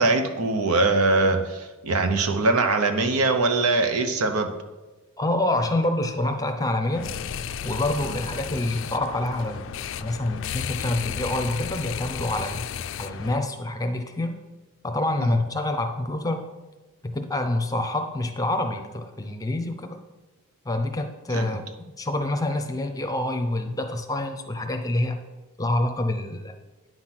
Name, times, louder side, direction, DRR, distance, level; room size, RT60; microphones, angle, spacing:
voice 1, 0.0-4.5 8.0-8.2 21.3-21.6, right 3 dB, 85° right, 7 dB, 1.0 m, -22 dB
voice 2, 5.2-7.1 7.6-9.7 10.0-12.6 13.0-14.4 14.8-16.5 17.0-20.0 20.7-21.6 22.0-25.2 25.6-26.5, left 1 dB, 15° left, 6 dB, 0.6 m, -27 dB
sound 1, 6.9-13.4, left 7 dB, 60° left, 0.4 m, -33 dB
9.5 x 5.9 x 6.1 m, 1.2 s
head